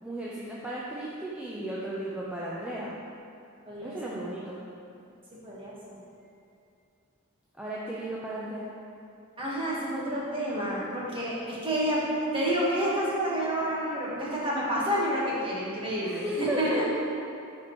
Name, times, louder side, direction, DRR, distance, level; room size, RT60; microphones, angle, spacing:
voice 1, 0.0-2.9 3.8-4.6 7.5-8.7 16.0-16.8, right 1 dB, 5° right, -6 dB, 0.5 m, -34 dB
voice 2, 3.7-4.2 5.4-6.0 9.4-12.0 12.3-16.8, equal, 25° right, -6 dB, 1.4 m, -29 dB
10.5 x 4.3 x 3.1 m, 2.6 s
head